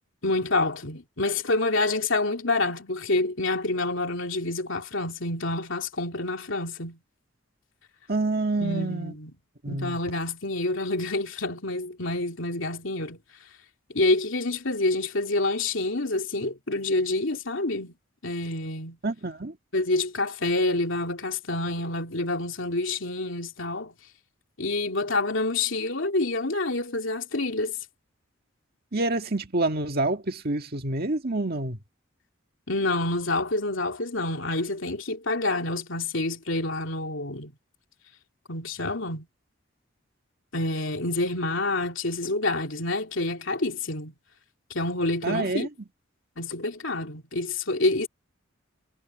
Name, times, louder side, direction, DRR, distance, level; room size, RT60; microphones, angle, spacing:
voice 1, 0.2-7.0 8.6-9.3 9.7-13.2 13.9-17.9 18.2-19.0 19.7-23.9 24.6-27.8 32.7-37.5 38.5-39.3 40.5-44.1 44.7-45.7 46.4-48.1, left 2 dB, 65° left, 2.9 m, -27 dB
voice 2, 8.1-9.1 9.6-10.0 19.0-19.6 28.9-31.8 45.2-45.7, right 2 dB, 50° right, 1.9 m, -27 dB
head